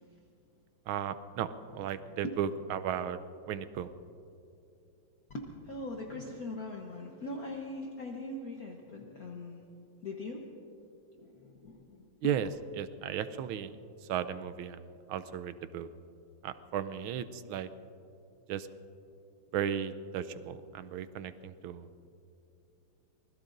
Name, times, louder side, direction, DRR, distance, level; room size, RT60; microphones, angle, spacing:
voice 1, 0.9-3.2 3.4-3.9 12.2-12.5 12.8-13.8 14.1-15.9 16.4-17.7 18.5-18.7 19.5-21.9, right 9 dB, 80° right, 12 dB, 1.4 m, -35 dB
voice 2, 5.3-9.7 10.0-10.4 11.1-12.2, left 2 dB, 50° left, 0 dB, 1.3 m, -41 dB
25.5 x 20.0 x 2.6 m, 2.7 s
omnidirectional pair, 2.4 m